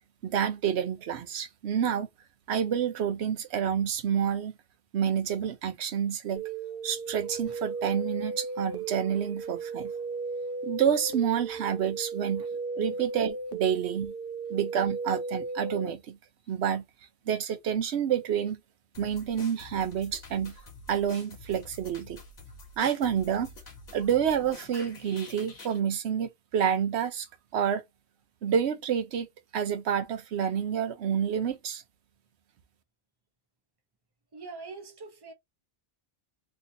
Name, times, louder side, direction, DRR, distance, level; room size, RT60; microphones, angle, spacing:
voice 1, 0.2-2.1 2.5-4.5 4.9-6.4 6.8-9.9 10.6-12.4 12.8-14.1 14.5-16.2 16.5-16.8 17.3-18.6 19.0-20.5 20.9-22.2 22.8-23.5 23.9-27.3 27.5-27.8 28.4-29.3 29.5-31.8, right 8 dB, 85° right, 1.0 m, -28 dB
sound 1, 6.4-15.9, right 4 dB, 60° right, 0.8 m, -35 dB
sound 2, 18.9-25.8, left 3 dB, 70° left, 1.4 m, -48 dB
voice 2, 34.3-35.3, right 4 dB, 25° right, 0.7 m, -44 dB
3.2 x 2.9 x 2.6 m
omnidirectional pair, 1.1 m